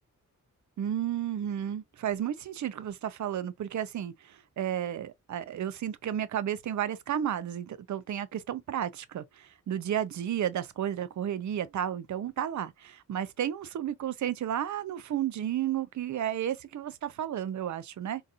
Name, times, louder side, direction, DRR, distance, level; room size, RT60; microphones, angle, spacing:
voice 1, 0.8-18.2, right 10 dB, 55° right, 0.5 m, -32 dB
3.9 x 2.7 x 2.4 m
wide cardioid pair, 105°, 34 cm